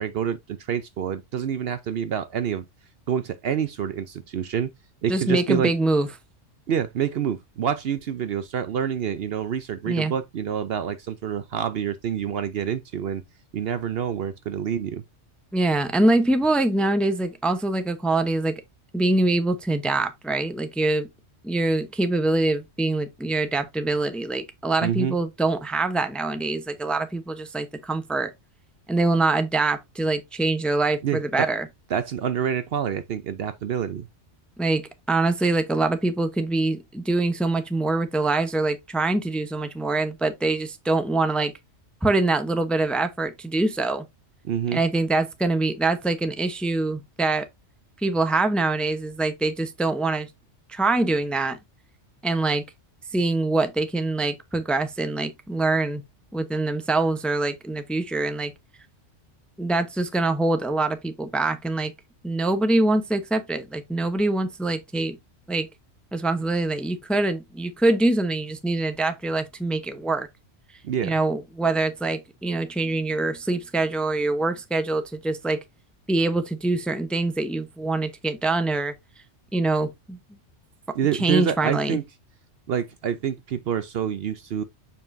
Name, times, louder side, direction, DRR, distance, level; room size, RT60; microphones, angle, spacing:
voice 1, 0.0-2.6 3.1-4.7 5.0-5.7 6.7-13.2 13.5-15.0 24.8-25.1 31.0-31.5 31.9-34.1 44.4-44.8 70.8-71.1 81.0-82.0 82.7-84.6, right 8 dB, 60° right, 0.8 m, -27 dB
voice 2, 5.1-6.1 9.9-10.1 15.5-18.5 18.9-21.1 21.4-28.3 28.9-31.6 34.6-41.5 42.0-44.0 44.7-47.5 48.0-50.3 50.7-51.6 52.2-52.6 53.1-56.0 56.3-58.5 59.6-61.9 62.2-65.2 65.5-65.7 66.1-70.3 71.0-75.6 76.1-78.9 79.5-80.2 81.2-82.0, right 2 dB, ahead, 0.7 m, -24 dB
7.0 x 5.5 x 2.6 m
omnidirectional pair, 1.2 m